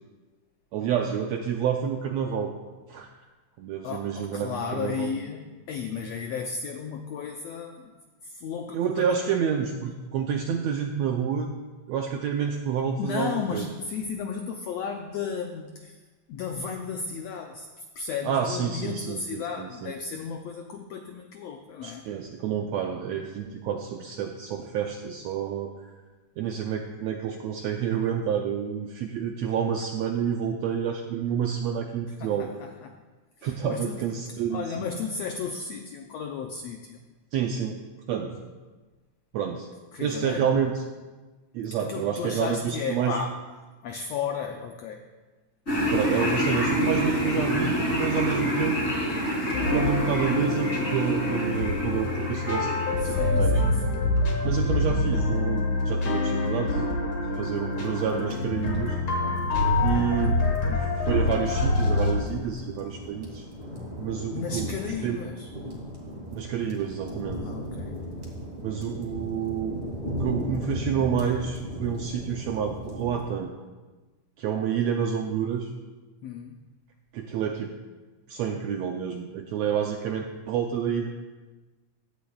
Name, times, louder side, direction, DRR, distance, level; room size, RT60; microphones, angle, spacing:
voice 1, 0.7-2.5 2.9-3.1 3.6-5.2 8.7-11.5 11.9-13.7 18.2-19.9 21.8-25.7 26.4-32.5 33.4-34.9 37.3-38.4 39.3-39.7 40.0-40.8 41.5-43.2 45.9-48.8 49.7-52.7 53.0-53.6 54.4-56.8 57.4-59.0 59.8-60.3 60.7-63.5 64.0-64.7 65.0-65.2 66.3-67.4 68.6-73.5 74.4-75.7 77.1-77.7 78.3-81.1, right 7 dB, 80° right, 3 dB, 1.5 m, -29 dB
voice 2, 3.8-7.9 8.2-9.3 13.0-16.0 16.3-22.1 32.2-33.0 33.4-34.0 34.5-37.0 39.9-40.5 41.9-43.4 43.8-45.0 53.0-54.1 59.6-60.5 64.3-65.5 67.3-68.1 76.2-76.6, left 6 dB, 90° left, 4 dB, 1.4 m, -34 dB
sound 1, 45.7-53.3, equal, 20° left, 2.9 m, -27 dB
sound 2, 49.5-62.1, left 2 dB, 45° left, 1.7 m, -26 dB
sound 3, 57.4-73.2, equal, 20° right, 2.2 m, -37 dB
16.0 x 12.0 x 2.3 m, 1.3 s
omnidirectional pair, 3.7 m